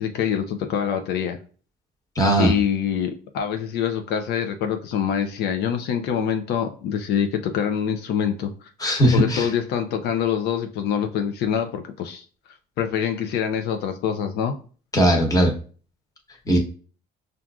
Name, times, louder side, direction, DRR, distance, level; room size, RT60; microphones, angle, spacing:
voice 1, 0.0-1.4 2.4-8.7 9.1-12.2 12.8-14.5, left 8 dB, 75° left, 6 dB, 0.5 m, -25 dB
voice 2, 2.2-2.5 8.8-9.5 14.9-15.5 16.5-16.6, right 1 dB, 20° left, 1 dB, 1.0 m, -18 dB
5.7 x 2.5 x 2.3 m, 0.40 s
cardioid pair, 110°, 17 cm